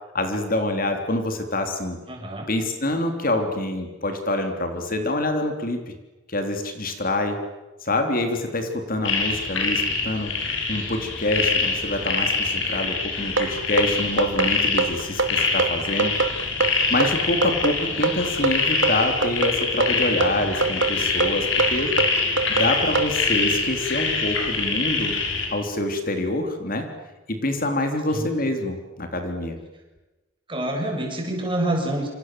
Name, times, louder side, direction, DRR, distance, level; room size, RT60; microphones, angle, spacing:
voice 1, 0.1-2.0 2.5-5.9 6.3-7.4 7.8-10.3 10.7-16.3 16.7-21.9 22.5-25.2 25.5-26.9 27.3-29.6, left 1 dB, 45° left, 5 dB, 3.5 m, -26 dB
voice 2, 2.1-2.5 18.0-18.1 28.1-28.3 30.5-32.1, right 1 dB, 25° right, 2 dB, 7.5 m, -27 dB
sound 1, 9.0-25.5, left 4 dB, 65° left, 7.5 m, -25 dB
sound 2, 13.4-23.1, right 4 dB, 65° right, 2.4 m, -23 dB
28.0 x 27.0 x 7.7 m, 1.1 s
head